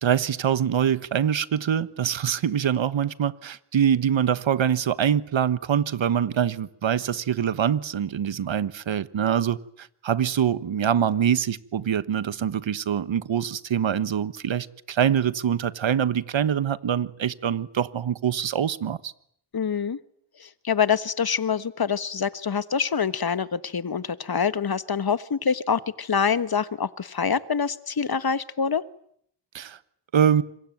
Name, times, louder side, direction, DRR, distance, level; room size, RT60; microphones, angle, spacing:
voice 1, 0.0-19.1 29.5-29.8 30.1-30.4, right 9 dB, 80° right, 1.3 m, -24 dB
voice 2, 19.5-20.0 20.4-28.8, left 6 dB, 50° left, 1.5 m, -25 dB
26.5 x 22.5 x 9.3 m
cardioid pair, 50°, 45 cm